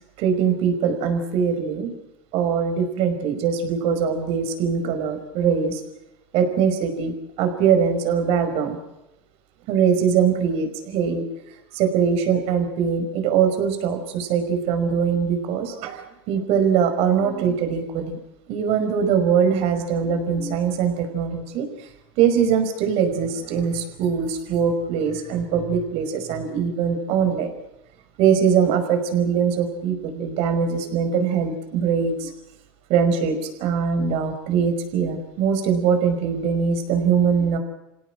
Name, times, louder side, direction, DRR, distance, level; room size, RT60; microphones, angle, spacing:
voice 1, 0.2-1.9 2.3-5.8 6.3-7.1 7.4-8.8 9.7-11.2 11.7-18.2 18.5-21.9 22.2-27.5 28.2-32.3 32.9-37.6, right 7 dB, 55° right, 8 dB, 5.3 m, -22 dB
27.0 x 17.0 x 7.5 m, 0.92 s
supercardioid pair, 130°, 12 cm